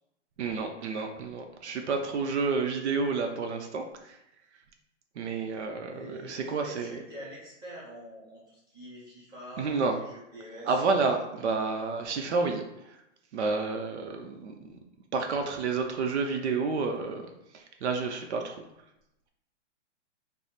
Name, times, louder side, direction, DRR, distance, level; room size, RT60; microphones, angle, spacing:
voice 1, 0.4-4.2 5.2-7.0 9.6-9.9 10.6-13.0 13.3-14.8 15.1-17.2 17.5-18.6, right 4 dB, 65° right, 4 dB, 0.6 m, -30 dB
voice 2, 5.9-10.7, equal, 10° right, -8 dB, 1.2 m, -45 dB
3.3 x 2.0 x 4.0 m, 0.85 s
hypercardioid pair, 145°, 37 cm